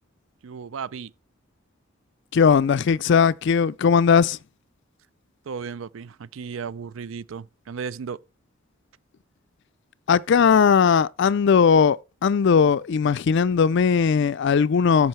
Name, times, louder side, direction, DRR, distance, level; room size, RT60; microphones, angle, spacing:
voice 1, 0.4-1.1 5.5-8.2, right 6 dB, 75° right, 0.4 m, -35 dB
voice 2, 2.3-4.4 10.1-12.0 12.2-15.1, left 6 dB, 60° left, 0.4 m, -18 dB
13.5 x 5.3 x 3.2 m
head